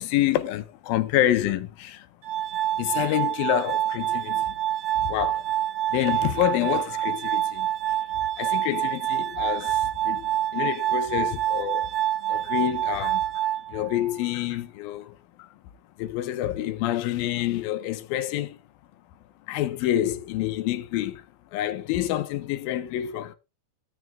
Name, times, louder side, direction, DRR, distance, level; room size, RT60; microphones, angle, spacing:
voice 1, 0.0-2.1 2.7-4.5 5.0-5.5 5.9-8.0 8.4-11.9 12.2-13.4 13.7-15.5 16.0-18.6 19.5-21.2 21.5-23.4, left 13 dB, 80° left, 2.7 m, -28 dB
Glass, 2.2-14.2, right 12 dB, 60° right, 1.8 m, -27 dB
15.0 x 9.3 x 3.6 m
omnidirectional pair, 4.1 m